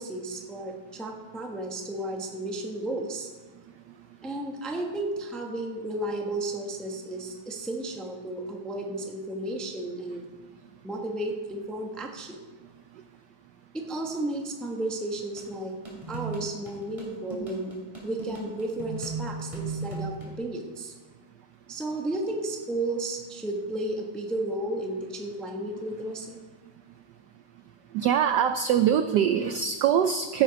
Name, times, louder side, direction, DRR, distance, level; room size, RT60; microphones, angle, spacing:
voice 1, 0.0-3.3 4.2-10.3 10.8-12.4 13.7-15.8 16.1-17.7 18.0-20.9 21.7-26.4, right 1 dB, ahead, 1 dB, 0.4 m, -33 dB
sound 1, 15.4-20.4, right 3 dB, 15° right, 2.8 m, -37 dB
voice 2, 27.9-30.4, right 9 dB, 85° right, 9 dB, 0.9 m, -23 dB
14.5 x 6.7 x 5.2 m, 1.3 s
omnidirectional pair, 2.4 m